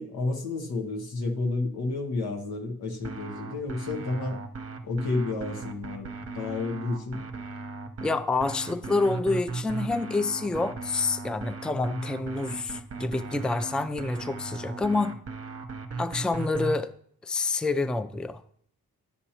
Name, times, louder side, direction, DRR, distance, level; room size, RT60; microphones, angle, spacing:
voice 1, 0.0-4.4 4.8-6.1 6.3-7.2 11.7-12.0, left 3 dB, 85° left, 4 dB, 1.1 m, -31 dB
sound 1, 3.0-16.8, right 4 dB, 40° right, 0.8 m, -37 dB
voice 2, 8.0-15.2 16.0-16.9 17.2-18.4, left 3 dB, ahead, 11 dB, 0.4 m, -28 dB
9.9 x 7.1 x 2.9 m, 0.62 s
cardioid pair, 65°, 36 cm